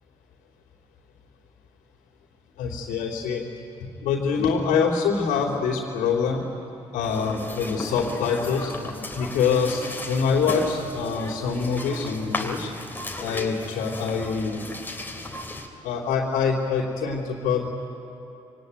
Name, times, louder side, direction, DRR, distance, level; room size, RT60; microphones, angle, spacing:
voice 1, 2.6-3.4 3.8-6.4 6.9-8.7 9.1-12.7 13.2-14.6 15.8-17.7, left 5 dB, 60° left, -5 dB, 3.3 m, -25 dB
sound 1, 7.0-15.7, left 2 dB, 15° left, 3.4 m, -35 dB
26.5 x 23.5 x 9.4 m, 3.0 s
figure-of-eight pair, 45°, 16 cm